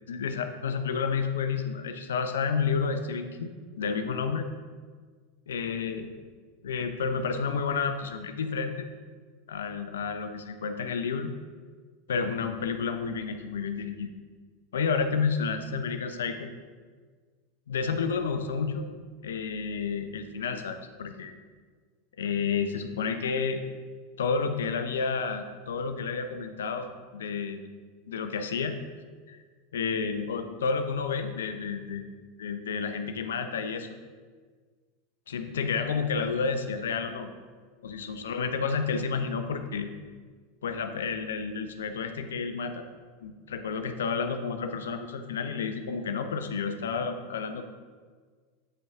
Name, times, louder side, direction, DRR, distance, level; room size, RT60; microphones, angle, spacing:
voice 1, 0.1-3.5 3.8-4.5 5.5-6.1 6.6-8.9 9.5-11.3 12.1-14.1 14.7-16.5 17.7-18.9 19.2-21.3 22.2-23.6 24.2-27.6 28.1-28.8 29.3-29.4 29.7-32.0 32.4-34.0 35.3-37.3 37.8-39.9 40.6-42.9 43.2-47.6, left 5 dB, 75° left, 7 dB, 0.6 m, -30 dB
8.6 x 5.2 x 3.5 m, 1.5 s
figure-of-eight pair, 85°, 0 cm